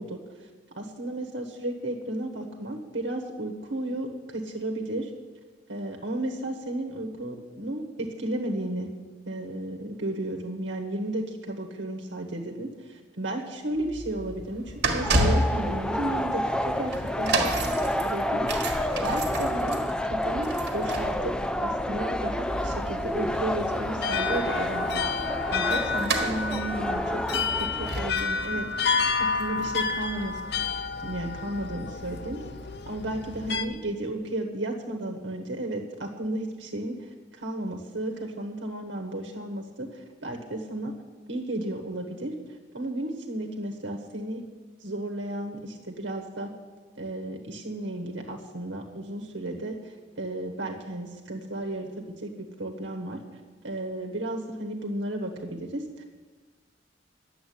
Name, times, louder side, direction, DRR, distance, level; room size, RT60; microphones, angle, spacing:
voice 1, 0.0-0.5 0.7-5.1 5.7-8.9 9.3-30.4 31.0-32.4 32.8-41.0 41.3-44.4 44.8-46.5 46.9-53.2 53.6-56.0, right 1 dB, 90° right, 3 dB, 1.3 m, -34 dB
sound 1, 13.7-30.7 31.4-31.5, right 2 dB, 60° right, 1.6 m, -32 dB
sound 2, 15.0-28.1, left 1 dB, 5° left, 0.4 m, -29 dB
sound 3, 22.5-33.6, left 4 dB, 60° left, 0.7 m, -30 dB
11.0 x 7.7 x 9.5 m, 1.4 s
head